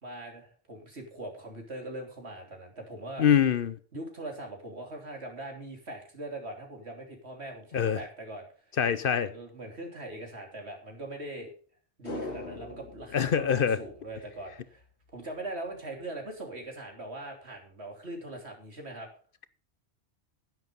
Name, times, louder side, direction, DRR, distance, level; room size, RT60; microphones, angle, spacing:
voice 1, 0.0-3.3 3.9-8.5 9.2-11.5 12.0-14.8 15.1-19.1, right 1 dB, 75° right, 3.5 m, -41 dB
voice 2, 3.2-3.8 7.7-8.0 8.8-9.3 13.1-13.8, left 8 dB, 60° left, 0.8 m, -24 dB
sound 1, 12.0-14.5 14.8-14.9, left 2 dB, 80° left, 2.3 m, -41 dB
10.5 x 10.5 x 5.2 m
omnidirectional pair, 1.1 m